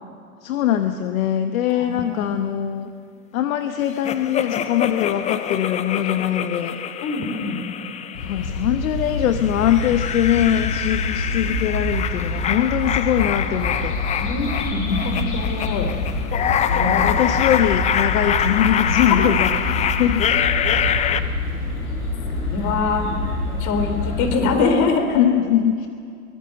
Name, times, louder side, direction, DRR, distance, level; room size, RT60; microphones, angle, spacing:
voice 1, 0.4-2.9 3.3-6.8 8.2-14.0 16.8-20.5 25.1-25.9, left 10 dB, 65° left, 8 dB, 1.2 m, -22 dB
voice 2, 1.8-2.4 7.0-7.6 14.2-16.0 16.7-17.2 19.2-19.3 22.5-23.0 23.6-25.3, left 4 dB, 40° left, 6 dB, 3.7 m, -24 dB
sound 1, 4.0-8.8 9.3-21.2, left 9 dB, 15° left, 0.6 m, -25 dB
sound 2, 8.1-24.5, left 2 dB, 90° left, 7.8 m, -26 dB
23.5 x 19.0 x 7.0 m, 2.3 s
hypercardioid pair, 110°, 44 cm